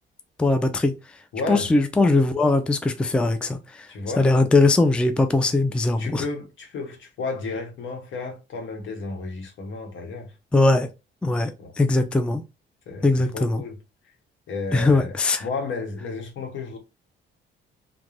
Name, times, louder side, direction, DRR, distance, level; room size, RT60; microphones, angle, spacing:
voice 1, 0.4-0.9 1.5-3.9 4.2-6.3 10.5-10.9 11.2-11.5 11.8-12.4 13.0-13.6 14.7-15.5, left 2 dB, 5° left, 0.3 m, -20 dB
voice 2, 1.3-1.7 3.9-4.3 6.0-10.3 11.6-11.7 12.9-13.0 13.3-13.8 14.5-16.8, left 3 dB, 75° left, 1.0 m, -32 dB
2.4 x 2.2 x 3.1 m
cardioid pair, 90°, 20 cm